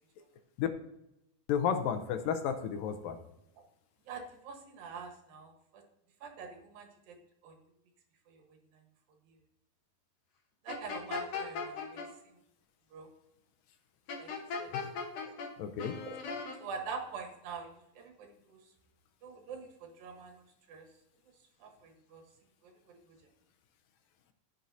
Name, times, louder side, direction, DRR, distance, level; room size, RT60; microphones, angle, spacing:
voice 1, 1.5-3.2 14.7-14.9 15.6-16.0, left 8 dB, 80° left, 7 dB, 2.3 m, -32 dB
voice 2, 4.1-5.8 6.2-7.2 7.4-7.6 8.3-8.4 10.6-12.0 12.9-13.1 14.2-14.3 14.6-14.7 15.2-15.3 16.1-17.7 18.0-18.6 19.2-20.9 21.6-22.2 22.6-23.1, right 5 dB, 75° right, 3 dB, 3.1 m, -45 dB
sound 1, 10.7-12.1 14.1-15.5 15.8-16.6, left 5 dB, 60° left, 1.9 m, -38 dB
15.5 x 6.3 x 2.8 m, 0.84 s
omnidirectional pair, 4.2 m